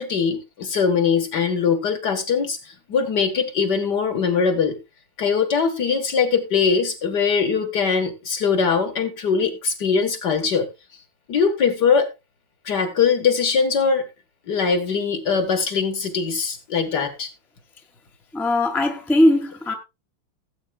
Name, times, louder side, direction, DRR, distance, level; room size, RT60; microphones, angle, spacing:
voice 1, 0.0-2.6 2.9-4.8 5.2-10.7 11.3-12.1 12.7-14.0 14.5-17.3, left 5 dB, 55° left, 2.1 m, -21 dB
voice 2, 18.3-19.7, left 1 dB, ahead, 1.2 m, -19 dB
17.5 x 8.3 x 2.4 m
omnidirectional pair, 2.3 m